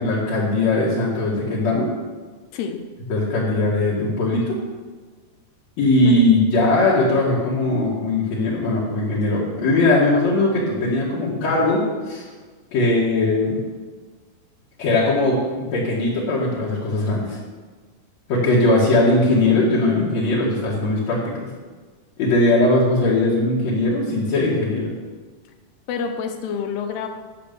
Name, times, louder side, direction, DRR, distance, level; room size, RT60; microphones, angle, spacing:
voice 1, 0.0-1.9 3.1-4.6 5.8-12.3 12.7-13.6 14.8-17.4 18.3-21.2 22.2-24.9, left 2 dB, 50° left, -7 dB, 2.7 m, -19 dB
voice 2, 2.5-2.8 6.1-6.2 25.9-27.1, left 6 dB, 80° left, 6 dB, 3.0 m, -28 dB
10.5 x 7.3 x 6.9 m, 1.4 s
omnidirectional pair, 4.7 m